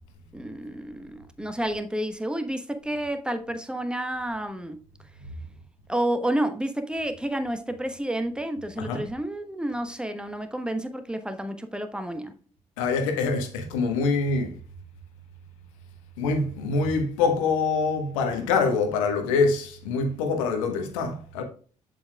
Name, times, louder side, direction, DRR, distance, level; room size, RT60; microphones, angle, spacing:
voice 1, 0.3-4.8 5.9-12.3, right 1 dB, 5° right, 1.2 m, -30 dB
voice 2, 12.8-14.6 16.2-21.4, left 4 dB, 75° left, 1.2 m, -25 dB
7.6 x 7.5 x 2.3 m
figure-of-eight pair, 45°, 17 cm